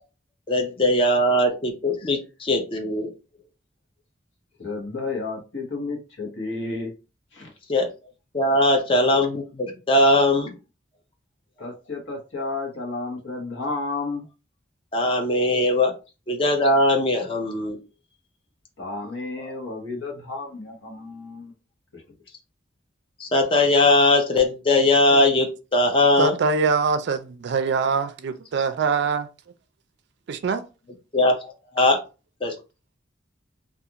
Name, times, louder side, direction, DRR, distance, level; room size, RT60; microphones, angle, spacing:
voice 1, 0.5-3.1 7.7-7.9 8.3-10.5 14.9-15.9 16.3-17.8 23.2-26.3 31.1-32.0 32.4-32.5, left 1 dB, 30° left, 0.5 m, -20 dB
voice 2, 4.6-6.9 7.3-7.5 11.6-14.2 18.8-21.5 21.9-22.0, left 3 dB, 70° left, 1.0 m, -32 dB
voice 3, 26.2-29.3 30.3-30.6, right 5 dB, 60° right, 0.3 m, -23 dB
2.4 x 2.4 x 2.8 m
head